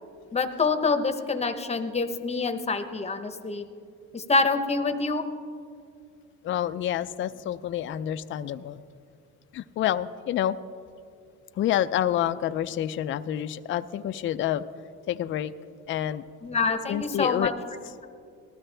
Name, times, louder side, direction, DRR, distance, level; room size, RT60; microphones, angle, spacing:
voice 1, 0.3-3.6 4.1-5.2 16.4-17.5, left 4 dB, 20° left, 7 dB, 0.8 m, -26 dB
voice 2, 6.4-8.8 9.5-10.6 11.6-14.6 15.1-15.5 15.9-16.2 16.9-17.5, left 11 dB, 40° left, 11 dB, 0.4 m, -28 dB
19.0 x 13.0 x 3.3 m, 2.4 s
cardioid pair, 120°, 32 cm